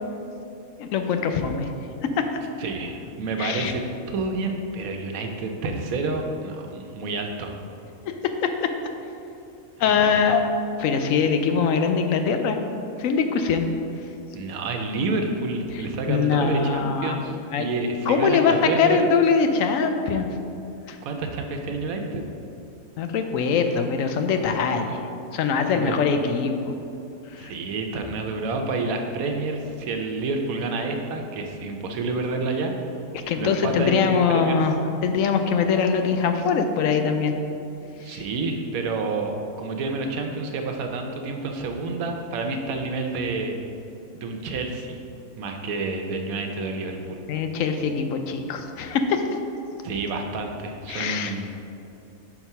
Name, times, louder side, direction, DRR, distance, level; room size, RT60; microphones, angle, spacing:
voice 1, 0.8-1.7 2.0-2.3 3.4-3.7 8.1-8.7 9.8-10.4 10.8-12.6 13.0-13.7 15.7-15.8 16.1-17.2 17.5-17.7 18.1-20.3 20.9-21.0 23.0-25.0 25.3-26.7 27.3-27.5 33.1-34.8 35.0-37.3 38.1-38.2 47.3-49.2 50.9-51.3, left 6 dB, 75° left, 6 dB, 0.9 m, -22 dB
voice 2, 2.6-7.6 9.9-10.4 14.3-19.1 21.0-22.2 25.7-25.9 27.4-32.7 33.4-34.6 37.9-43.5 44.1-45.0 45.4-47.2 49.8-51.5, right 3 dB, 85° right, 3 dB, 1.1 m, -29 dB
6.0 x 4.3 x 5.4 m, 2.7 s
omnidirectional pair, 1.4 m